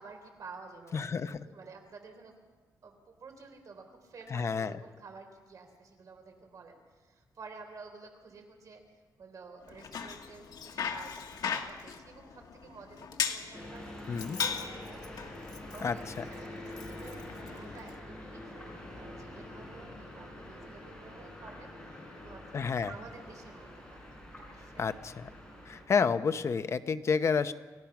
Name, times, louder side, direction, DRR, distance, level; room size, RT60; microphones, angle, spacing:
voice 1, 0.0-1.0 1.5-2.4 2.8-8.8 9.2-13.9 14.3-15.0 15.7-24.0 24.4-24.9, right 4 dB, 55° right, 4 dB, 3.6 m, -51 dB
voice 2, 0.9-1.4 4.3-4.7 14.1-14.4 15.8-16.0 22.5-22.9 24.8-25.3 25.7-27.5, left 5 dB, 45° left, 10 dB, 0.8 m, -29 dB
Bicycle, 9.7-18.0, left 7 dB, 70° left, 1.5 m, -39 dB
sound 1, 13.5-25.8, left 1 dB, 10° left, 7.8 m, -46 dB
28.5 x 16.0 x 6.0 m, 1.4 s
wide cardioid pair, 140°, 7 cm